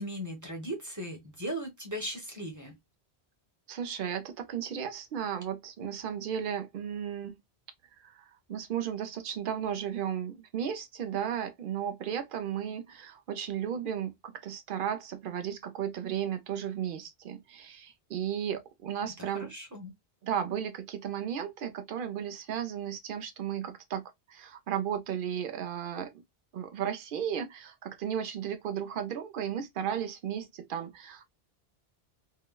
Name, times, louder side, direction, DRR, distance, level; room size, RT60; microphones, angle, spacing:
voice 1, 0.0-2.8 19.0-19.9, equal, 20° right, 0.9 m, -38 dB
voice 2, 3.7-7.4 8.0-19.5 20.2-24.0 24.3-26.1 26.5-31.2, right 9 dB, 60° right, 0.7 m, -34 dB
3.8 x 2.1 x 2.2 m
omnidirectional pair, 1.1 m